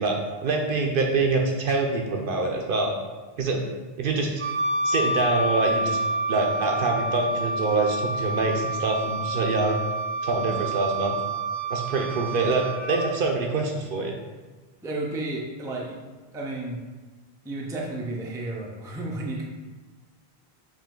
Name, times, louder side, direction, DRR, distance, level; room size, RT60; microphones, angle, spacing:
voice 1, 0.0-2.9 3.4-3.6 4.0-4.3 4.8-6.0 6.3-9.8 10.2-11.2 11.7-14.2, right 3 dB, 60° right, 1 dB, 0.7 m, -25 dB
Wind instrument woodwind instrument, 4.4-13.1, right 2 dB, 90° right, 1.3 m, -28 dB
voice 2, 14.8-16.0 16.3-16.8 17.4-19.4, right 2 dB, 5° right, -2 dB, 0.4 m, -32 dB
4.8 x 3.0 x 3.6 m, 1.3 s
omnidirectional pair, 1.1 m